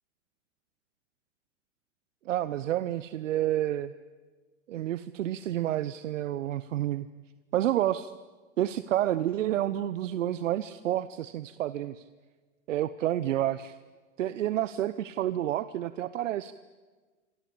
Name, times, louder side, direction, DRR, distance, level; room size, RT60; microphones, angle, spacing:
voice 1, 2.2-3.9 4.7-7.1 7.5-8.1 8.6-12.0 12.7-13.8 14.2-16.5, right 12 dB, 70° right, 14 dB, 1.0 m, -29 dB
27.5 x 25.5 x 8.6 m, 1.4 s
hypercardioid pair, 115°, 38 cm